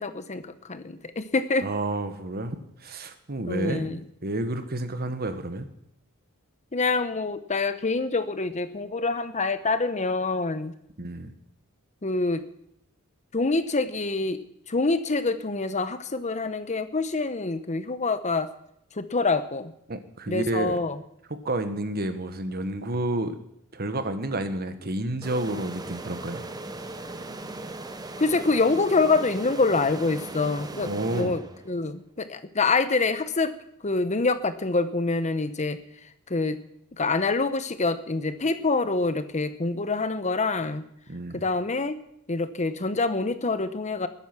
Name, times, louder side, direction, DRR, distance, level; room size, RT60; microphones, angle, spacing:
voice 1, 0.0-1.7 3.5-4.0 6.7-10.7 12.0-12.5 13.3-14.4 14.7-18.5 18.9-19.7 20.3-21.0 28.2-33.5 33.8-35.8 36.3-36.6 37.0-40.9 41.3-42.0 42.3-44.1, left 3 dB, 30° left, 11 dB, 0.9 m, -26 dB
voice 2, 1.6-2.6 2.8-5.7 11.0-11.3 19.9-20.8 21.4-23.4 23.7-26.4 30.8-31.4 41.1-41.4, right 1 dB, 45° right, 9 dB, 1.5 m, -30 dB
sound 1, 25.2-31.9, right 2 dB, 15° right, 1.0 m, -38 dB
20.5 x 10.0 x 6.1 m, 0.75 s
head